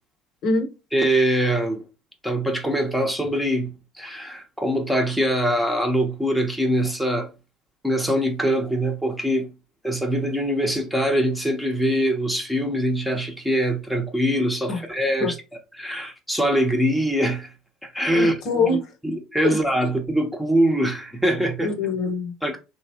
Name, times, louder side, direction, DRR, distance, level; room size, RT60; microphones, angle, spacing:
voice 1, 0.9-1.8 2.2-3.7 4.0-7.3 7.8-9.5 9.8-15.3 15.8-17.5 17.8-18.4 19.0-21.7 22.4-22.6, equal, 5° right, 0.9 m, -23 dB
voice 2, 18.1-18.9 19.4-19.6 21.6-22.3, left 3 dB, 55° left, 0.9 m, -24 dB
3.0 x 2.3 x 2.8 m
hypercardioid pair, 70°, 0 cm